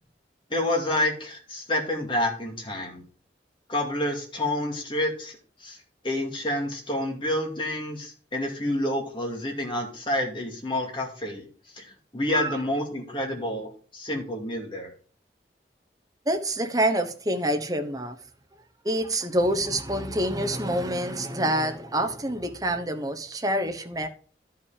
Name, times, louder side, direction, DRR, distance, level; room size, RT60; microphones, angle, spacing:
voice 1, 0.5-3.0 3.7-5.8 6.0-11.4 11.7-14.9, left 1 dB, 25° left, 2.3 m, -29 dB
voice 2, 16.3-18.2 18.8-24.1, right 1 dB, 20° right, 1.0 m, -27 dB
11.5 x 5.8 x 4.9 m
head